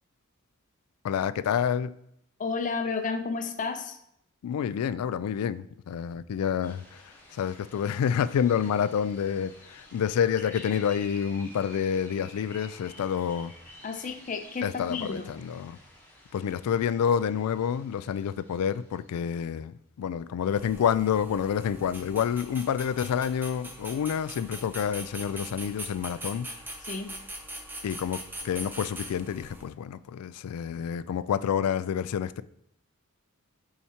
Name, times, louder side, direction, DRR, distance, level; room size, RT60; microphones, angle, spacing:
voice 1, 1.0-1.9 4.4-13.5 14.6-15.8 16.3-26.5 27.8-32.4, left 8 dB, 80° left, 0.3 m, -28 dB
voice 2, 2.4-4.0 13.8-15.3 26.9-27.1, left 4 dB, 35° left, 0.6 m, -32 dB
sound 1, 6.6-19.2, left 1 dB, 10° left, 1.1 m, -51 dB
sound 2, 20.5-29.7, right 1 dB, 10° right, 0.6 m, -42 dB
7.1 x 4.8 x 2.9 m
head